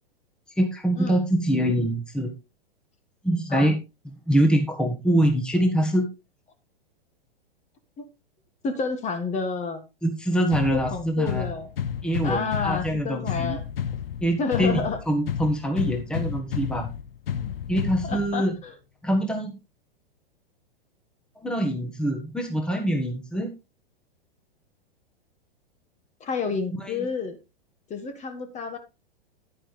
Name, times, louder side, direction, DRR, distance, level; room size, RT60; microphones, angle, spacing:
voice 1, 0.6-2.3 3.2-3.7 4.3-6.1 10.0-11.4 12.0-13.6 14.2-16.9 17.7-18.5 19.0-19.6 21.4-23.5 26.7-27.1, right 1 dB, 5° left, 4 dB, 1.5 m, -24 dB
voice 2, 8.6-9.8 10.7-11.7 12.2-13.6 14.4-15.0 17.4-17.5 18.0-18.7 26.2-27.4 27.9-28.8, left 4 dB, 25° left, 8 dB, 1.6 m, -30 dB
sound 1, 10.5-18.5, left 8 dB, 75° left, 0.8 m, -32 dB
10.5 x 9.7 x 3.3 m, 0.27 s
figure-of-eight pair, 105°, 29 cm